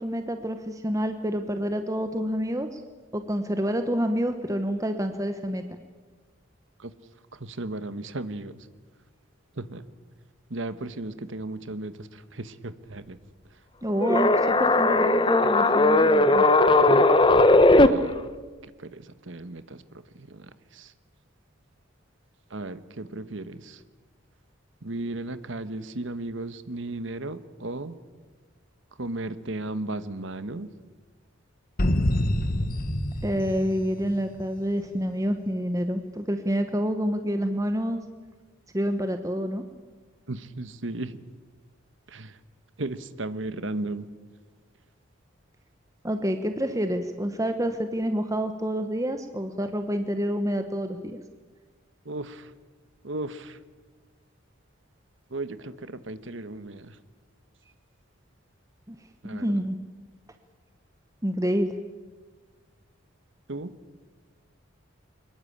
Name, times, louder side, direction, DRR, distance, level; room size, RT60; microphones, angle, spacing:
voice 1, 0.0-2.8 3.1-5.6 13.8-16.4 33.2-38.0 38.7-39.6 46.0-51.2 58.9-59.0 59.3-59.7 61.2-61.7, equal, 15° right, 7 dB, 1.0 m, -28 dB
voice 2, 7.3-8.7 9.6-9.8 10.5-13.2 17.8-18.2 18.6-19.8 20.1-20.9 22.5-23.8 24.8-27.9 29.0-30.7 40.3-41.2 42.1-42.4 42.8-44.1 52.0-52.5 53.0-53.6 55.3-57.0 59.2-59.6 63.5-63.8, right 2 dB, 65° right, 13 dB, 1.2 m, -35 dB
sound 1, 14.0-17.9, left 2 dB, 25° left, 0.9 m, -18 dB
sound 2, 31.8-34.5, left 1 dB, 45° left, 1.3 m, -26 dB
23.0 x 20.5 x 8.7 m, 1.4 s
head